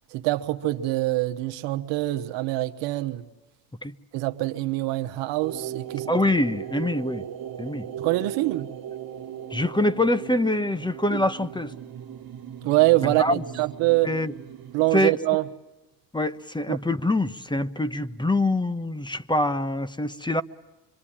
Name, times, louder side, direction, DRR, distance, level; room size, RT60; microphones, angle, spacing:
voice 1, 0.1-3.2 4.1-6.1 8.0-8.7 11.1-11.2 12.6-14.1 14.7-15.5 16.7-16.8, right 17 dB, 85° right, 1.2 m, -24 dB
sound 1, 5.4-14.9, right 9 dB, 55° right, 1.7 m, -38 dB
voice 2, 6.1-7.2 7.6-7.8 9.5-11.7 13.0-13.4 14.0-14.3 14.9-15.1 16.1-20.4, left 1 dB, 10° left, 1.0 m, -25 dB
26.0 x 23.5 x 8.8 m
supercardioid pair, 75°, 43 cm